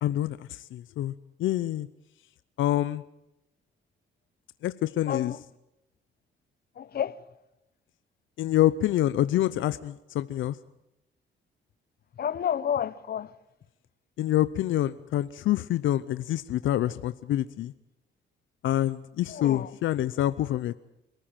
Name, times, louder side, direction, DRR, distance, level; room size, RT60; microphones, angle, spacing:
voice 1, 0.0-1.1 1.4-1.9 2.6-3.0 4.6-5.4 8.4-10.6 14.2-17.7 18.6-20.7, left 13 dB, 75° left, 0.7 m, -26 dB
voice 2, 5.1-5.4 6.8-7.2 12.2-13.3 19.3-19.7, left 9 dB, 50° left, 1.0 m, -30 dB
27.0 x 14.0 x 9.1 m
cardioid pair, 90°, 20 cm